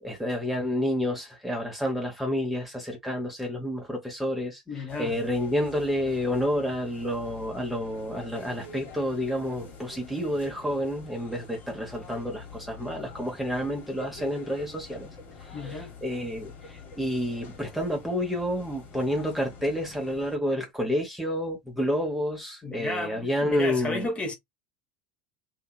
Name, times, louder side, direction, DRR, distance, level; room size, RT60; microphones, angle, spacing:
voice 1, 0.0-15.1 15.4-24.1, equal, 5° right, 0.9 m, -29 dB
voice 2, 4.7-5.1 15.5-15.9 22.6-24.3, left 2 dB, 25° left, 1.1 m, -33 dB
sound 1, 4.9-20.4, left 4 dB, 45° left, 1.3 m, -46 dB
2.7 x 2.7 x 2.2 m
hypercardioid pair, 75°, 5 cm